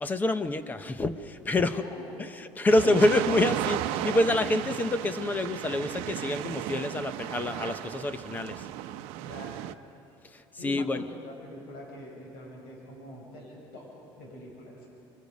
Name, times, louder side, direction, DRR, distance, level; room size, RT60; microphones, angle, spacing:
voice 1, 0.0-1.8 2.2-8.7 10.3-11.0, left 2 dB, 15° left, 11 dB, 0.8 m, -27 dB
voice 2, 1.7-2.3 2.9-3.1 9.2-9.6 10.6-14.8, equal, 90° left, -2 dB, 6.6 m, -44 dB
sound 1, 2.7-9.7, right 13 dB, 85° right, 0.7 m, -34 dB
27.0 x 24.0 x 5.3 m, 2.7 s
cardioid pair, 150°, 10 cm